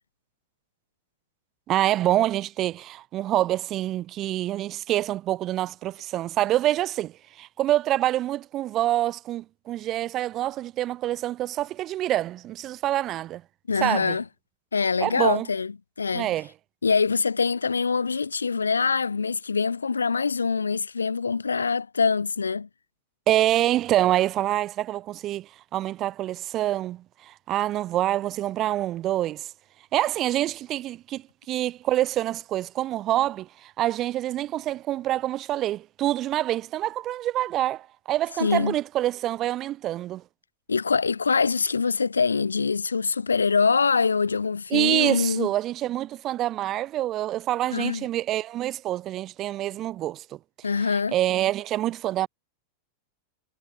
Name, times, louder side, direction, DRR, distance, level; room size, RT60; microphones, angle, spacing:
voice 1, 1.7-7.1 7.4-13.4 13.8-14.2 15.0-15.5 16.1-16.5 23.3-29.5 29.9-40.2 44.7-50.2 50.9-52.3, right 13 dB, 35° right, 3.5 m, -26 dB
voice 2, 13.7-14.2 14.7-16.3 16.8-22.7 38.4-38.8 40.7-45.5 47.7-48.1 50.6-51.2, left 5 dB, 75° left, 2.4 m, -24 dB
figure-of-eight pair, 90°, 0 cm